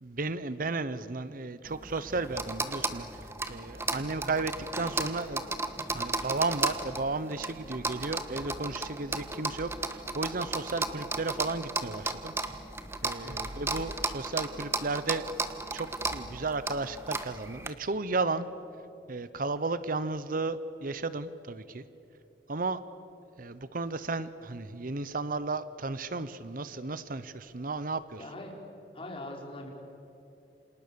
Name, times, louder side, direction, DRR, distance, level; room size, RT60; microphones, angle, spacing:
voice 1, 0.0-3.1 3.5-5.5 5.9-12.3 13.0-15.3 15.7-18.5 19.1-21.8 22.5-22.8 23.4-28.2, right 3 dB, 55° right, 14 dB, 0.9 m, -34 dB
sound 1, 1.7-17.7, right 3 dB, 15° right, 1.3 m, -35 dB
voice 2, 28.2-28.5 28.9-29.7, left 1 dB, 30° left, 1 dB, 4.3 m, -42 dB
29.0 x 27.0 x 7.0 m, 2.8 s
head